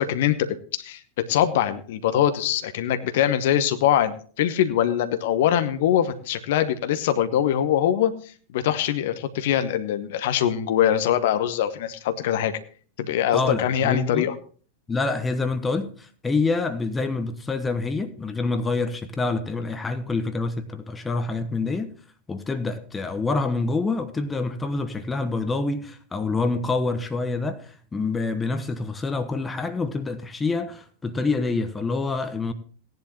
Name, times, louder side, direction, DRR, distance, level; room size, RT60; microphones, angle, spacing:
voice 1, 0.0-12.6 13.0-14.3, left 10 dB, 55° left, 1.0 m, -23 dB
voice 2, 13.3-14.3 14.9-21.9 22.3-32.5, left 3 dB, 15° left, 1.1 m, -27 dB
17.5 x 10.5 x 3.0 m
figure-of-eight pair, 90°, 0 cm